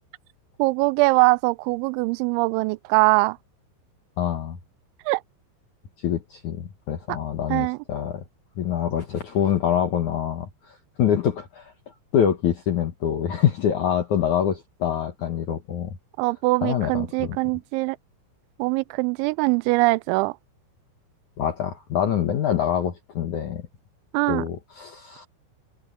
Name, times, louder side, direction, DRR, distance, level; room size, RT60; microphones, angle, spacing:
voice 1, 0.6-3.4 5.1-5.2 7.5-7.8 16.2-18.0 18.6-20.4 24.1-24.5, right 24 dB, 85° right, 2.9 m, -22 dB
voice 2, 4.2-4.6 6.0-8.3 8.6-11.7 12.1-15.9 16.6-17.4 21.4-23.6 24.3-25.3, left 9 dB, 65° left, 1.9 m, -25 dB
omnidirectional pair, 5.4 m